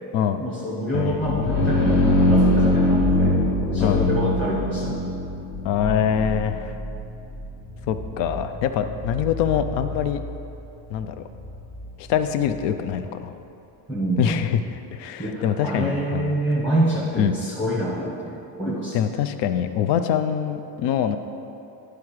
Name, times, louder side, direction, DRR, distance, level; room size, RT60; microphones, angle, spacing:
voice 1, 0.4-3.4 3.7-5.1 13.9-14.4 15.2-19.0, right 1 dB, 5° left, -5 dB, 0.8 m, -26 dB
voice 2, 0.9-1.6 3.8-4.1 5.6-6.7 7.9-10.2 10.9-11.2 12.0-13.3 14.2-16.3 17.2-17.4 18.9-21.2, left 9 dB, 75° left, 9 dB, 0.6 m, -24 dB
sound 1, 1.1-12.6, left 1 dB, 50° left, 1.3 m, -24 dB
10.5 x 4.8 x 4.8 m, 2.8 s
cardioid pair, 160°, 43 cm